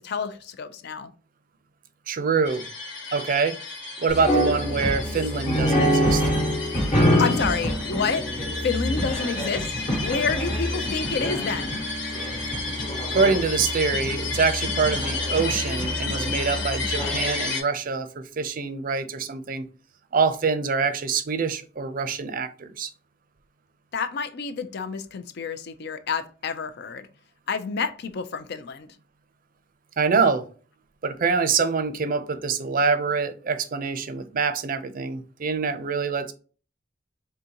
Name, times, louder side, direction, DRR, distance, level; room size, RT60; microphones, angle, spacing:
voice 1, 0.0-1.1 7.2-8.3 8.6-11.9 23.9-27.1 27.5-28.9, left 5 dB, 60° left, 0.4 m, -29 dB
voice 2, 2.1-2.6 3.1-3.5 4.0-6.2 13.1-19.7 20.1-22.9 30.0-30.5 31.0-36.3, right 5 dB, 50° right, 0.5 m, -25 dB
sound 1, 2.5-17.6, left 4 dB, 90° left, 1.6 m, -33 dB
sound 2, 4.1-17.4, equal, 45° left, 1.1 m, -26 dB
3.9 x 3.5 x 2.8 m
head